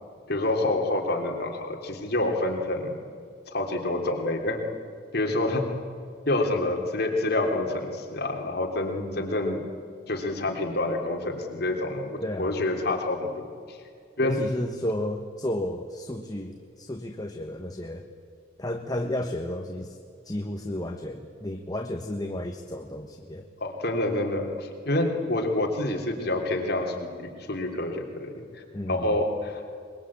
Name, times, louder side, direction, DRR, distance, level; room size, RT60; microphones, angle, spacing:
voice 1, 0.3-2.9 3.5-4.6 5.1-5.7 6.3-9.7 10.1-13.8 14.2-14.4 23.6-28.6 28.9-29.6, left 2 dB, 55° left, 2 dB, 3.3 m, -27 dB
voice 2, 12.2-12.6 14.2-18.1 18.6-20.0 20.2-23.4 28.7-29.2, left 1 dB, 20° left, 4 dB, 1.3 m, -32 dB
23.0 x 22.5 x 8.6 m, 2.2 s
head